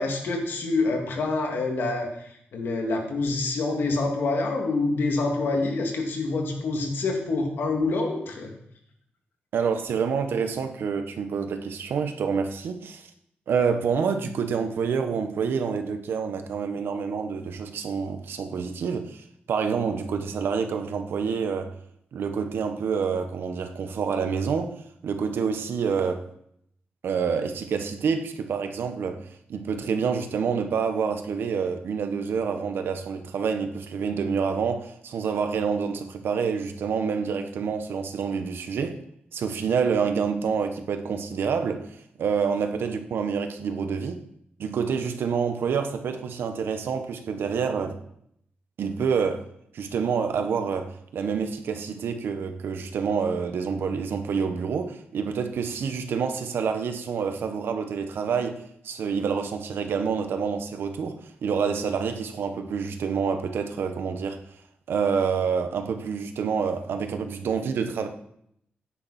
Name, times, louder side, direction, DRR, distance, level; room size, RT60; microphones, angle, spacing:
voice 1, 0.0-8.5, left 3 dB, 75° left, 2.8 m, -26 dB
voice 2, 9.5-13.1 13.5-21.7 22.1-24.8 25.0-26.3 27.0-39.0 39.3-41.8 42.2-44.2 44.6-48.0 48.8-49.5 49.7-64.4 64.9-68.1, right 6 dB, 90° right, 1.4 m, -27 dB
16.0 x 10.0 x 4.4 m
wide cardioid pair, 180°, 4 cm